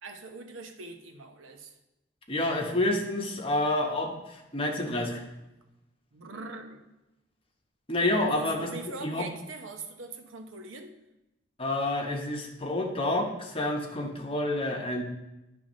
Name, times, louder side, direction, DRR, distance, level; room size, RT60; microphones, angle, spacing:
voice 1, 0.0-1.7 6.1-6.8 8.3-10.9, right 3 dB, 85° right, 5 dB, 0.8 m, -42 dB
voice 2, 2.3-5.2 7.9-8.7 9.0-9.3 11.6-15.0, left 1 dB, 30° left, 1 dB, 0.9 m, -29 dB
10.5 x 3.5 x 5.1 m, 0.96 s
head